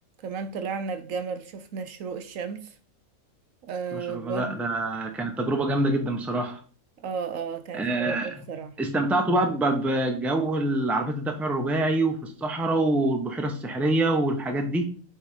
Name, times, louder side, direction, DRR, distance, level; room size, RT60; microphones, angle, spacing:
voice 1, 0.2-2.8 3.6-4.6 7.0-8.7, right 5 dB, 70° right, 1.0 m, -33 dB
voice 2, 3.9-6.6 7.7-8.3 8.8-14.9, right 2 dB, ahead, 0.7 m, -25 dB
7.2 x 3.4 x 4.9 m
omnidirectional pair, 1.5 m